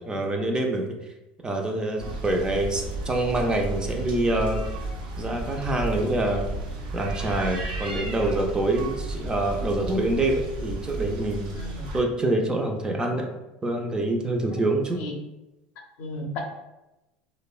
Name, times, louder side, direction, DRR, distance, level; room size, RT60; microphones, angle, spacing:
voice 1, 0.1-0.9 1.4-4.7 5.2-6.4 6.9-11.6 11.9-13.3 13.6-15.0, right 2 dB, 15° right, 2 dB, 0.4 m, -26 dB
sound 1, 2.0-12.0, right 2 dB, 90° right, 0.4 m, -33 dB
voice 2, 16.0-16.4, left 2 dB, 65° left, 2 dB, 0.5 m, -34 dB
2.8 x 2.0 x 2.3 m, 0.97 s
hypercardioid pair, 90°, 5 cm